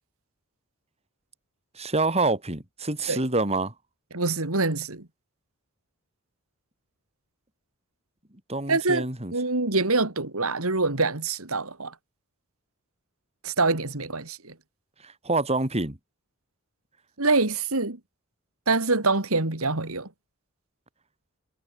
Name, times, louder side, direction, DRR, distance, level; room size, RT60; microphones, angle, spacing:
voice 1, 1.8-3.7 8.5-9.3 15.0-16.0, right 2 dB, 30° right, 3.8 m, -26 dB
voice 2, 4.1-5.1 8.7-9.1 9.3-11.9 13.4-14.5 17.2-18.0 18.7-20.1, right 3 dB, 75° right, 3.0 m, -25 dB
head